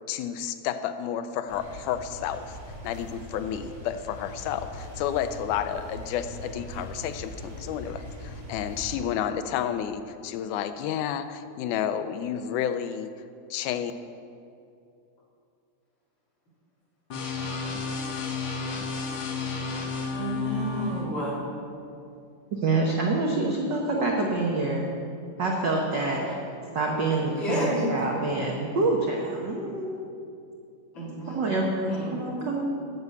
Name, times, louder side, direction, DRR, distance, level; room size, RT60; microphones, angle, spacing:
voice 1, 0.1-2.6 2.8-13.1 13.5-13.9, left 9 dB, 90° left, 11 dB, 2.1 m, -31 dB
sound 1, 1.5-8.9, equal, 20° right, 1.7 m, -41 dB
sound 2, 17.1-21.1, left 4 dB, 60° left, 1.3 m, -32 dB
voice 2, 20.1-21.4 26.2-26.3 27.3-27.9 30.9-31.5 31.9-32.4, equal, 40° left, -7 dB, 4.2 m, -31 dB
voice 3, 22.5-24.9 25.4-26.2 26.7-30.1 31.3-32.6, right 2 dB, 80° right, -1 dB, 1.0 m, -26 dB
11.0 x 6.9 x 8.2 m, 2.5 s
omnidirectional pair, 3.5 m